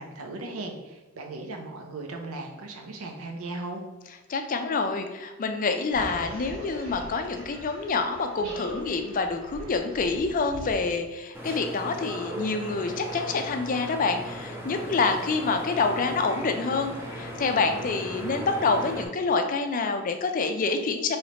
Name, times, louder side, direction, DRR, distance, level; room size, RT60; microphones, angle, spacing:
voice 1, 0.0-3.8, right 2 dB, 80° right, 3 dB, 0.6 m, -37 dB
voice 2, 4.3-21.2, left 4 dB, 40° left, 6 dB, 0.4 m, -27 dB
sound 1, 5.9-10.9, equal, 60° right, 1.2 m, -41 dB
sound 2, 11.3-19.1, equal, 10° right, 0.6 m, -37 dB
3.2 x 2.9 x 4.2 m, 1.1 s
head